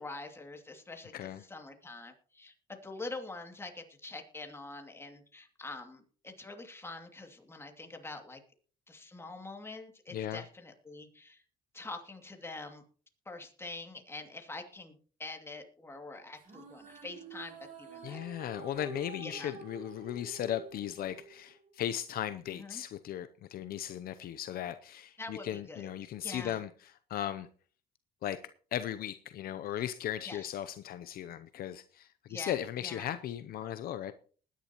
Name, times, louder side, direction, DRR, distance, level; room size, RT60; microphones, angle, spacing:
voice 1, 0.0-8.4 8.9-11.4 11.7-12.8 13.3-18.4 19.2-19.6 22.5-22.8 25.2-25.9 26.2-26.6 30.3-30.5 32.3-33.1, left 2 dB, 15° left, 2.4 m, -45 dB
voice 2, 10.1-10.4 18.0-26.7 27.1-27.5 28.2-28.4 28.7-34.1, left 11 dB, 60° left, 0.7 m, -37 dB
sound 1, 16.4-21.8, right 4 dB, 50° right, 5.1 m, -49 dB
20.0 x 10.0 x 3.0 m
cardioid pair, 110°, 17 cm